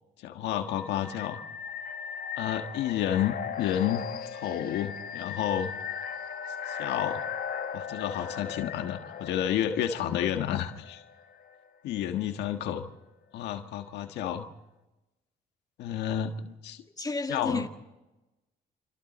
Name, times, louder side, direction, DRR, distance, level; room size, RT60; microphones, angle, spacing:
voice 1, 0.2-1.4 2.4-4.0 4.3-5.7 6.7-7.2 7.7-11.0 11.8-12.8 13.3-14.5 15.8-16.8 17.3-17.7, left 10 dB, 80° left, 1.6 m, -30 dB
sound 1, 0.8-11.5, left 7 dB, 60° left, 1.6 m, -38 dB
voice 2, 17.0-17.7, left 3 dB, 20° left, 2.1 m, -31 dB
29.0 x 26.0 x 4.3 m
supercardioid pair, 70°, 17 cm